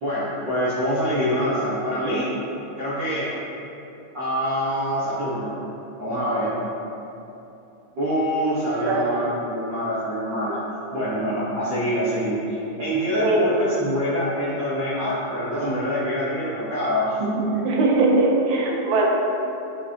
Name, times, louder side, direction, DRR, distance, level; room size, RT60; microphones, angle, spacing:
voice 1, 0.0-2.2 2.8-3.3 4.1-5.5 6.0-6.5 7.9-10.6 10.9-17.6, equal, 50° right, -12 dB, 1.3 m, -25 dB
voice 2, 17.7-19.1, right 2 dB, 70° right, -1 dB, 2.0 m, -20 dB
7.9 x 5.8 x 2.9 m, 2.9 s
omnidirectional pair, 3.8 m